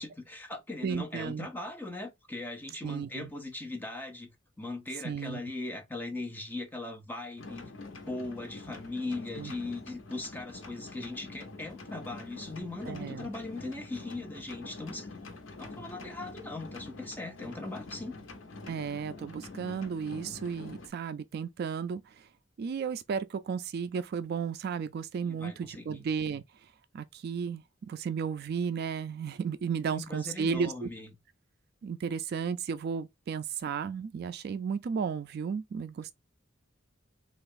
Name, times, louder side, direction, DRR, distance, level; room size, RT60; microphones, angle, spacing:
voice 1, 0.0-15.1 15.6-18.2 25.2-26.1 29.9-31.1, left 2 dB, 10° left, 0.8 m, -39 dB
voice 2, 0.8-1.5 2.8-3.3 5.0-5.4 9.4-9.5 12.9-13.3 18.7-22.3 22.6-26.4 26.9-30.9 31.8-36.1, right 6 dB, 55° right, 0.3 m, -34 dB
sound 1, 7.4-20.9, left 3 dB, 70° left, 0.8 m, -45 dB
3.4 x 2.4 x 3.6 m
head